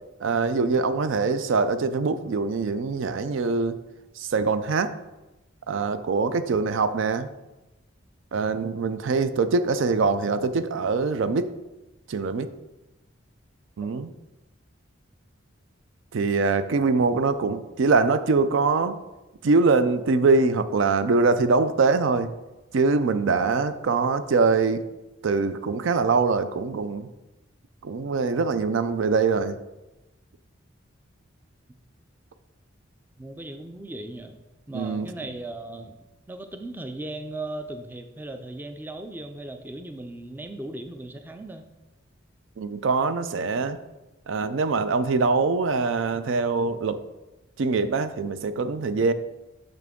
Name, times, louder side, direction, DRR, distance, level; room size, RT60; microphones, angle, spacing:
voice 1, 0.2-3.8 4.2-4.9 5.7-7.3 8.3-11.5 12.1-12.5 13.8-14.1 16.1-19.0 19.4-22.3 22.7-24.8 25.2-27.1 27.8-29.6 34.7-35.1 42.6-43.8 44.3-47.0 47.6-49.1, right 4 dB, 70° right, 11 dB, 0.4 m, -23 dB
voice 2, 33.2-34.4 34.7-35.9 36.3-41.7, right 2 dB, 10° right, 7 dB, 0.4 m, -37 dB
6.5 x 6.0 x 3.6 m, 1.0 s
head